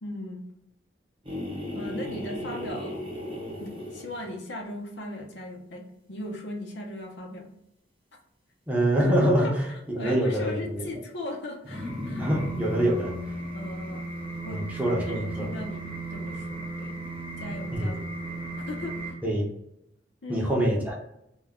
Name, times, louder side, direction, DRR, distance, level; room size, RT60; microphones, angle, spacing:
voice 1, 0.0-0.5 1.7-3.0 3.6-7.5 9.4-12.2 13.5-14.1 14.4-14.6 14.9-17.0 17.4-18.1 18.7-19.2 20.2-20.5, left 1 dB, 80° left, 1 dB, 0.6 m, -38 dB
sound 1, 1.2-4.4 11.6-19.1, right 1 dB, 30° right, 0.9 m, -35 dB
voice 2, 8.7-9.6 9.9-10.9 12.2-13.1 14.5-15.5 17.7-17.9 19.2-19.5 20.3-21.0, right 1 dB, 10° right, -3 dB, 0.6 m, -25 dB
2.3 x 2.1 x 3.5 m, 0.80 s
head